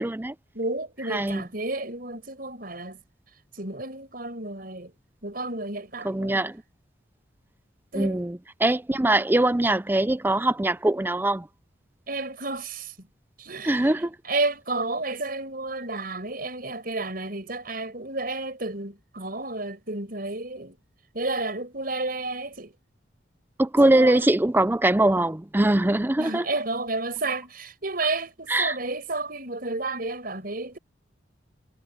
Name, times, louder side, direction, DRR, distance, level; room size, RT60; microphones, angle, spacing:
voice 1, 0.0-0.3 1.1-1.4 6.0-6.6 7.9-11.5 13.6-14.2 23.6-26.5 28.5-28.8, right 1 dB, 10° right, 0.4 m, -22 dB
voice 2, 0.5-3.0 3.5-4.9 5.2-6.5 7.9-8.2 12.1-13.1 13.4-14.0 14.2-20.8 21.1-22.7 23.9-24.2 26.2-30.8, right 2 dB, 50° right, 6.4 m, -31 dB
head